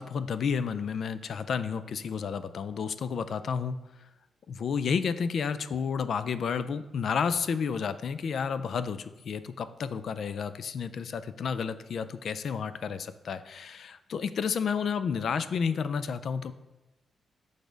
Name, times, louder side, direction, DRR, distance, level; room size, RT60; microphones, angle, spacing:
voice 1, 0.0-3.8 4.5-16.5, left 6 dB, 55° left, 13 dB, 0.3 m, -31 dB
6.3 x 3.4 x 5.0 m, 1.0 s
wide cardioid pair, 150°, 0 cm